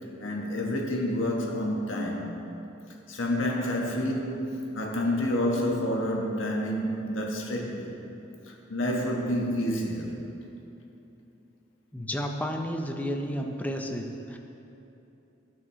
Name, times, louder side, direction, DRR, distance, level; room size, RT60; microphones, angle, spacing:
voice 1, 0.2-2.4 3.1-7.9 8.5-10.1, left 1 dB, 80° left, -1 dB, 1.4 m, -29 dB
voice 2, 11.9-14.4, equal, 10° left, 3 dB, 0.6 m, -32 dB
17.5 x 6.1 x 3.1 m, 2.9 s
head